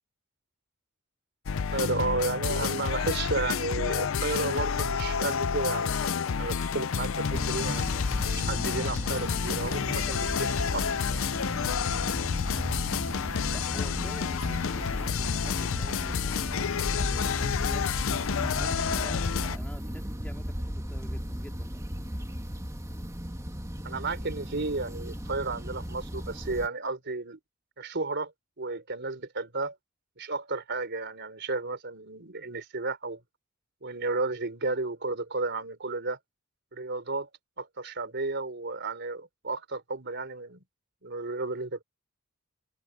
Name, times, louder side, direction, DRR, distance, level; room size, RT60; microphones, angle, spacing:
sound 1, 1.5-19.6, left 6 dB, 70° left, 0.5 m, -29 dB
voice 1, 1.7-7.8 8.3-10.9 23.8-27.4 27.8-28.3 28.6-29.8 30.2-33.2 33.8-36.2 36.7-37.3 37.6-40.6 41.0-41.8, right 3 dB, 55° right, 3.7 m, -33 dB
sound 2, 7.3-26.7, equal, 15° right, 2.6 m, -36 dB
voice 2, 13.5-17.9 18.5-21.8, equal, 5° left, 3.0 m, -47 dB
head